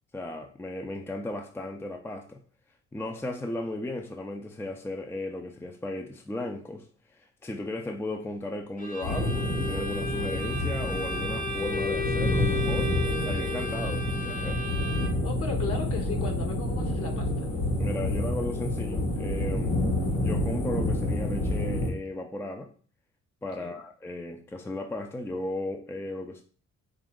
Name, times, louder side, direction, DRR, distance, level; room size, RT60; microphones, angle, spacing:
voice 1, 0.1-2.4 2.9-6.9 7.1-12.9 13.2-14.6 17.8-19.8 20.2-22.7 23.4-26.4, left 1 dB, 10° left, 0.5 m, -35 dB
Bowed string instrument, 8.8-15.4, left 2 dB, 25° left, 0.9 m, -34 dB
sound 1, 9.0-21.9, left 1 dB, 70° left, 2.0 m, -28 dB
voice 2, 15.2-17.5 23.6-23.8, left 3 dB, 50° left, 1.2 m, -36 dB
4.9 x 2.5 x 3.6 m
cardioid pair, 90°, 30 cm